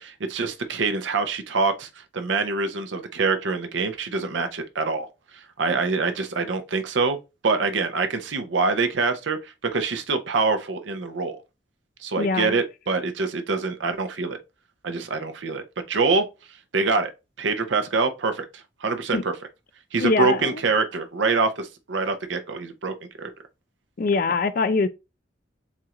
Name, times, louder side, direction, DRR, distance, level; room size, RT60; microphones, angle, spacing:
voice 1, 0.0-5.1 5.3-7.2 7.4-11.4 12.0-14.4 14.8-16.3 16.7-17.1 17.4-19.4 19.9-23.3, right 4 dB, 80° right, 0.7 m, -25 dB
voice 2, 12.2-12.5 19.1-19.2 20.0-20.5 24.0-24.9, left 4 dB, 50° left, 0.4 m, -22 dB
7.2 x 2.5 x 2.9 m
head